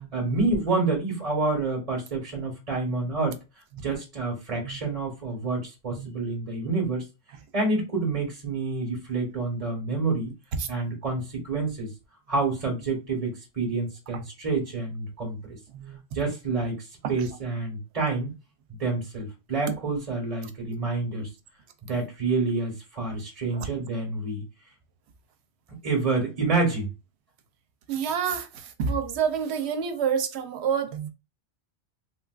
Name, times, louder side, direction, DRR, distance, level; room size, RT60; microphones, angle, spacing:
voice 1, 0.1-3.4 3.8-7.0 7.5-10.3 10.7-11.9 12.3-15.6 16.1-18.3 18.7-21.3 21.8-24.4 25.8-26.9, right 3 dB, 35° right, 1.0 m, -28 dB
voice 2, 27.9-28.5 28.8-31.1, right 7 dB, 80° right, 0.9 m, -27 dB
3.5 x 2.4 x 2.3 m
omnidirectional pair, 1.1 m